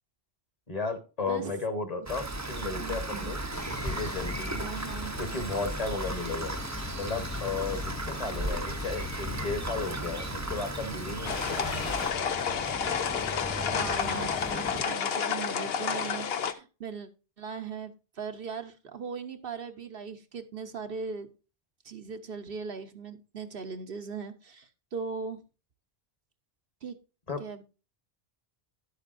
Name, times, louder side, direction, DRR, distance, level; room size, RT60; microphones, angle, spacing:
voice 1, 0.7-3.4 3.8-4.7 5.2-6.6 6.9-11.9 27.3-27.4, left 3 dB, 40° left, 8 dB, 1.4 m, -34 dB
voice 2, 1.3-1.6 2.8-3.3 4.6-5.1 13.7-17.1 17.4-21.3 21.8-25.4 26.8-27.0 27.4-27.6, right 5 dB, 65° right, 7 dB, 1.0 m, -39 dB
Rain, 2.1-12.1, right 2 dB, 20° right, 0.7 m, -36 dB
sound 1, 3.5-14.8, left 3 dB, 20° left, 0.4 m, -40 dB
sound 2, 11.2-16.5, left 7 dB, 75° left, 1.0 m, -30 dB
11.0 x 8.2 x 2.5 m, 0.31 s
omnidirectional pair, 1.1 m